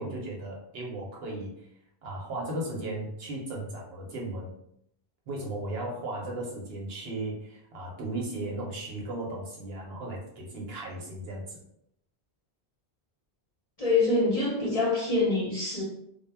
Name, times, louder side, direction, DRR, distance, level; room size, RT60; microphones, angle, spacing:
voice 1, 0.0-1.5 2.0-4.5 5.3-11.6, right 1 dB, 65° right, -2 dB, 0.9 m, -36 dB
voice 2, 13.8-15.8, left 3 dB, 40° left, -6 dB, 0.6 m, -25 dB
2.1 x 2.0 x 3.3 m, 0.75 s
omnidirectional pair, 1.1 m